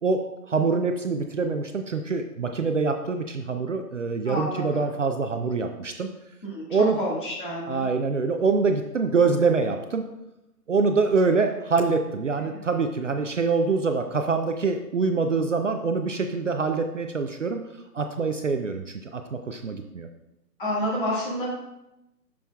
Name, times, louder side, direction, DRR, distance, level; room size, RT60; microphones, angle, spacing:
voice 1, 0.5-6.1 6.7-7.0 7.7-10.0 10.7-17.6 17.9-20.1, right 4 dB, 55° right, 5 dB, 0.5 m, -25 dB
voice 2, 4.3-4.9 6.4-7.8 20.6-21.5, equal, 30° left, -4 dB, 1.9 m, -29 dB
7.0 x 6.2 x 2.3 m, 0.91 s
hypercardioid pair, 165°, 48 cm